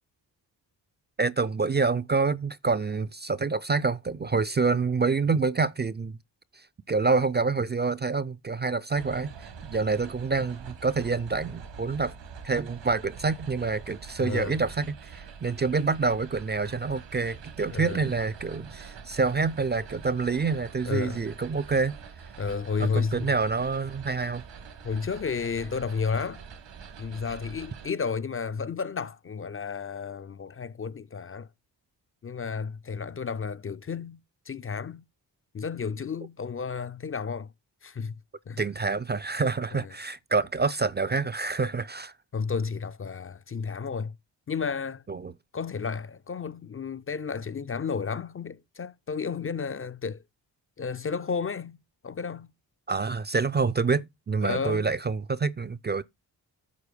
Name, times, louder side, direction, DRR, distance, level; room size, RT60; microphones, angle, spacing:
voice 1, 1.2-6.2 6.5-9.3 9.7-12.1 12.4-21.9 22.8-24.4 38.6-42.1 45.1-45.3 52.9-56.0, right 4 dB, 25° right, 0.4 m, -27 dB
sound 1, 9.0-27.9, right 6 dB, 85° right, 1.8 m, -45 dB
voice 2, 14.2-14.6 17.7-18.0 20.8-21.2 22.4-23.3 24.8-26.4 27.0-31.5 32.2-34.2 34.5-35.1 35.5-37.5 37.8-38.1 38.5-38.6 39.8-39.9 42.3-44.1 44.5-45.0 45.5-50.2 50.8-52.5 54.4-54.9, left 5 dB, 30° left, 0.5 m, -32 dB
8.4 x 4.6 x 5.2 m
cardioid pair, 55°, 43 cm